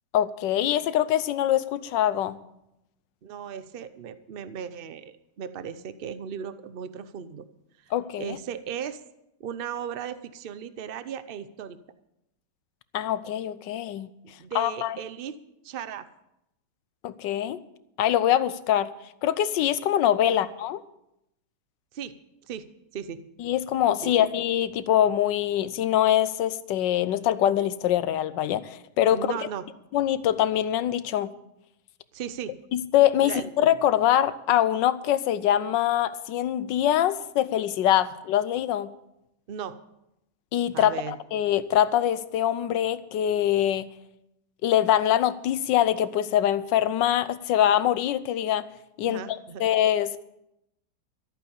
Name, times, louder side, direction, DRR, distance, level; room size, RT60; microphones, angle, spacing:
voice 1, 0.1-2.4 7.9-8.4 12.9-14.1 14.5-15.0 17.0-17.6 18.0-18.9 19.2-20.8 23.4-29.2 29.9-31.3 32.7-38.9 40.5-43.9 44.6-48.6 49.0-49.2 49.6-50.2, left 11 dB, 90° left, 15 dB, 1.4 m, -24 dB
voice 2, 3.2-7.4 7.8-7.9 8.2-9.0 9.4-11.8 14.4-15.4 15.6-16.1 20.3-20.5 21.9-22.2 22.5-23.3 24.0-24.1 29.1-29.7 32.1-32.6 33.2-33.5 39.5-39.8 40.7-41.2 49.0-49.7, right 8 dB, 75° right, 12 dB, 0.5 m, -36 dB
14.0 x 9.1 x 7.1 m, 0.84 s
omnidirectional pair, 1.9 m